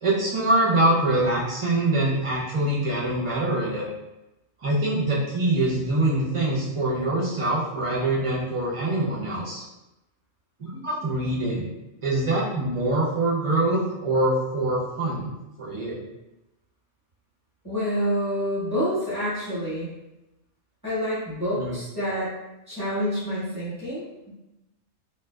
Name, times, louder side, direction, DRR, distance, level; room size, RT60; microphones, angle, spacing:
voice 1, 0.0-3.9 4.6-9.6 10.6-11.7 12.0-15.3 15.6-16.0 21.6-21.7, right 2 dB, 45° right, -6 dB, 0.4 m, -24 dB
voice 2, 17.6-19.9 20.8-22.3 22.7-24.3, equal, 20° left, -11 dB, 0.9 m, -27 dB
2.6 x 2.2 x 2.2 m, 0.95 s
omnidirectional pair, 1.4 m